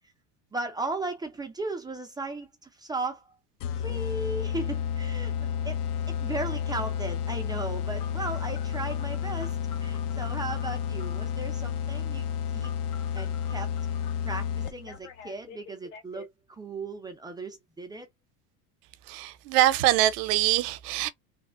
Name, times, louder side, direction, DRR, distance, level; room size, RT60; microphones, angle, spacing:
voice 1, 0.5-3.2 3.8-5.8 6.1-12.2 12.5-12.7 13.1-13.7 14.2-18.1, right 2 dB, 10° right, 0.3 m, -36 dB
sound 1, 3.6-15.0, left 8 dB, 60° left, 0.6 m, -31 dB
Telephone, 8.0-11.3 12.6-14.1 14.6-16.3, left 7 dB, 75° left, 1.2 m, -48 dB
voice 2, 19.1-21.1, right 14 dB, 75° right, 0.7 m, -24 dB
3.3 x 2.1 x 2.4 m
supercardioid pair, 115°, 48 cm